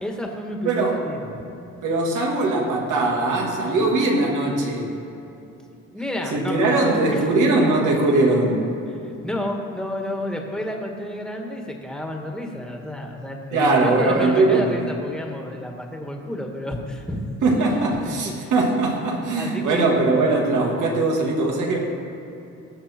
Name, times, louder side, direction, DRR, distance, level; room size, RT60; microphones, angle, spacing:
voice 1, 0.0-1.3 5.9-7.3 9.0-17.2 18.0-18.1 18.4-18.5 19.3-19.9, left 1 dB, ahead, 1 dB, 1.7 m, -30 dB
voice 2, 0.6-1.0 1.8-4.9 6.3-8.7 13.5-14.8 17.4-21.9, right 2 dB, 80° right, -1 dB, 2.3 m, -20 dB
18.0 x 6.4 x 4.5 m, 2.8 s
cardioid pair, 90°, 30 cm